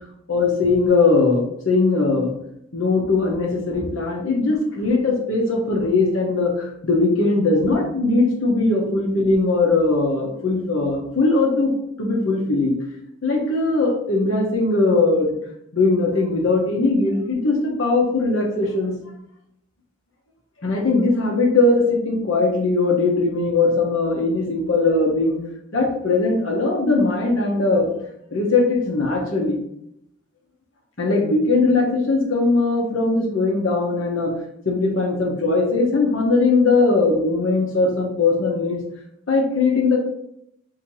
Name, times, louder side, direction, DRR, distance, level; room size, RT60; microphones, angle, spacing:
voice 1, 0.3-2.3 2.7-11.7 12.0-12.8 13.2-15.3 15.7-18.9 20.6-25.4 25.7-27.9 28.3-29.6 31.0-34.3 34.6-38.8 39.3-40.0, left 3 dB, 85° left, -1 dB, 1.1 m, -20 dB
4.3 x 2.9 x 3.0 m, 0.76 s
head